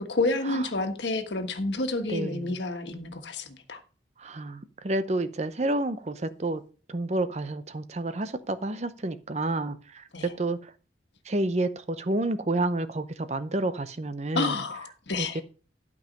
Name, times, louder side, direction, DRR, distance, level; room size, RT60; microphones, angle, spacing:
voice 1, 0.1-3.8 10.1-10.3 14.3-15.4, left 2 dB, 85° left, 1.5 m, -29 dB
voice 2, 2.1-2.6 4.2-6.6 6.9-10.7 11.3-14.6 15.2-15.4, right 2 dB, 40° right, 0.7 m, -30 dB
12.0 x 5.4 x 5.3 m
head